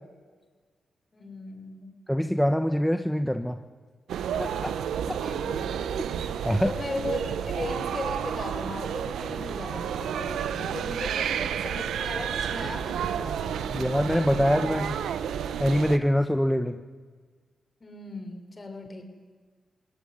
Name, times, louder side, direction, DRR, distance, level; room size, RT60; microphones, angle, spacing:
voice 1, 1.1-2.0 5.2-5.8 6.6-14.0 17.8-19.0, left 3 dB, 40° left, 6 dB, 5.5 m, -38 dB
voice 2, 2.1-3.6 4.4-4.8 5.1-5.2 6.2-6.7 13.7-15.0 15.6-16.8, equal, 5° left, 7 dB, 1.4 m, -24 dB
sound 1, 4.1-16.0, right 8 dB, 90° right, 1.0 m, -31 dB
20.5 x 18.0 x 9.8 m, 1.5 s
cardioid pair, 55°, 0 cm